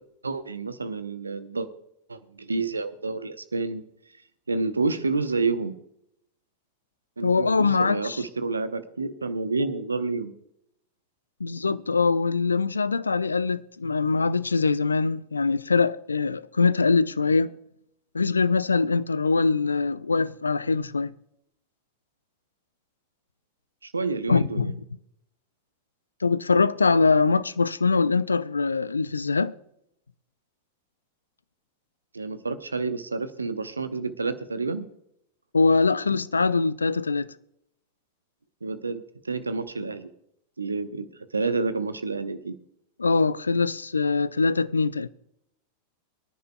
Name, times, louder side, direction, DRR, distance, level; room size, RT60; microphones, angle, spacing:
voice 1, 0.2-1.7 2.1-3.8 4.5-5.7 7.2-10.4 23.8-24.7 32.1-34.9 38.6-40.1 40.6-41.1 41.3-42.5, right 3 dB, 80° right, 0.8 m, -29 dB
voice 2, 7.2-8.2 11.4-17.6 18.1-21.1 24.3-24.7 26.2-29.5 35.5-37.3 43.0-45.1, left 4 dB, 75° left, 0.4 m, -23 dB
24.0 x 10.5 x 2.3 m
figure-of-eight pair, 90°, 0 cm